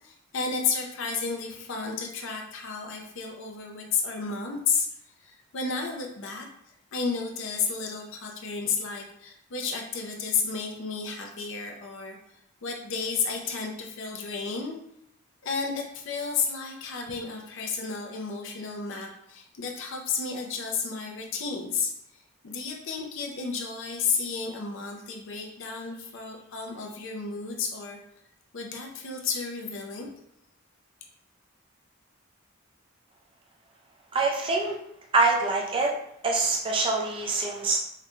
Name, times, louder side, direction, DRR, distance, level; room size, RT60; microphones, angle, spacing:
voice 1, 0.0-4.9 5.2-6.5 6.9-12.2 12.6-14.8 15.4-21.9 22.4-28.0 28.5-30.1, left 5 dB, 65° left, 1 dB, 0.5 m, -32 dB
voice 2, 34.1-34.8 35.1-35.9 36.2-37.8, right 3 dB, 25° right, 0 dB, 0.4 m, -24 dB
3.8 x 2.2 x 3.0 m, 0.73 s
head